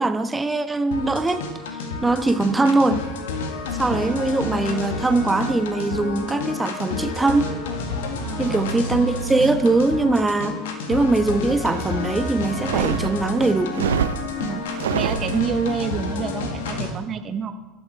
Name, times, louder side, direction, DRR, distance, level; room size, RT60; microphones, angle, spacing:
voice 1, 0.0-1.5 2.0-3.1 3.7-7.6 8.4-13.9, right 3 dB, 15° right, 1.0 m, -21 dB
sound 1, 0.9-16.9, left 4 dB, 65° left, 1.8 m, -29 dB
voice 2, 3.9-4.2 8.2-8.8 14.4-14.6 14.9-17.5, right 7 dB, 35° right, 1.3 m, -28 dB
sound 2, 12.5-15.8, right 9 dB, 70° right, 0.5 m, -27 dB
25.0 x 12.5 x 3.4 m
figure-of-eight pair, 75°, 0 cm